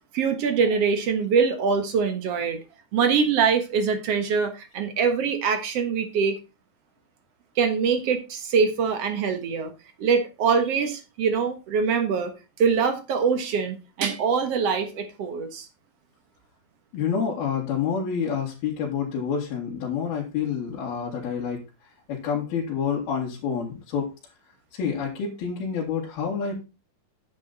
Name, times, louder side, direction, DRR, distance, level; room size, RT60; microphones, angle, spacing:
voice 1, 0.1-2.6 2.9-6.4 7.6-9.7 10.0-12.3 12.6-15.7, right 6 dB, 55° right, 7 dB, 1.8 m, -23 dB
voice 2, 16.9-21.6 22.1-24.1 24.7-26.6, left 7 dB, 80° left, -4 dB, 4.0 m, -28 dB
9.8 x 7.8 x 4.1 m, 0.28 s
omnidirectional pair, 4.4 m